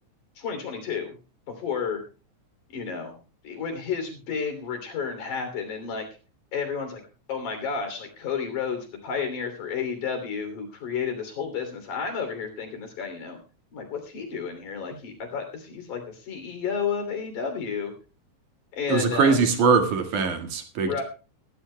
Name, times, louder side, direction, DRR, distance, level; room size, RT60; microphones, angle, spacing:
voice 1, 0.4-1.2 1.5-2.0 2.7-3.2 3.4-6.1 6.5-7.0 7.3-13.4 13.7-17.9 18.7-19.4 20.8-21.0, left 6 dB, 80° left, 6 dB, 4.5 m, -31 dB
voice 2, 18.9-20.9, right 5 dB, 75° right, 6 dB, 3.3 m, -22 dB
21.0 x 14.5 x 2.2 m, 0.35 s
omnidirectional pair, 3.5 m